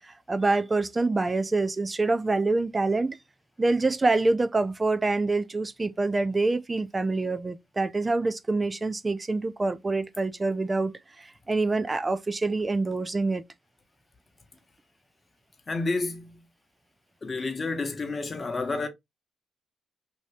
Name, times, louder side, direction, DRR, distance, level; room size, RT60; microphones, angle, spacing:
voice 1, 0.0-3.2 3.6-13.4, right 3 dB, 20° right, 0.4 m, -26 dB
voice 2, 15.7-16.4 17.2-18.9, left 3 dB, 30° left, 0.9 m, -30 dB
2.8 x 2.7 x 3.2 m
cardioid pair, 90°, 0 cm